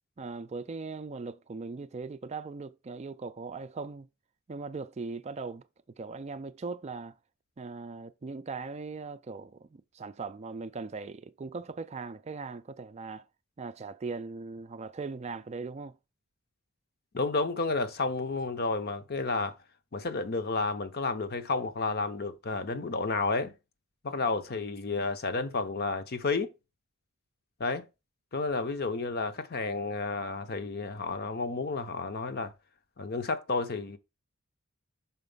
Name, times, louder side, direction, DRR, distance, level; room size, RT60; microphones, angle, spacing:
voice 1, 0.2-4.1 4.5-5.6 6.0-7.1 7.6-13.2 13.6-15.9, right 4 dB, 30° right, 0.4 m, -39 dB
voice 2, 17.1-19.6 19.9-23.5 24.0-26.5 27.6-27.9 28.3-32.5 33.0-34.0, left 3 dB, 50° left, 0.8 m, -31 dB
5.8 x 4.2 x 5.4 m
head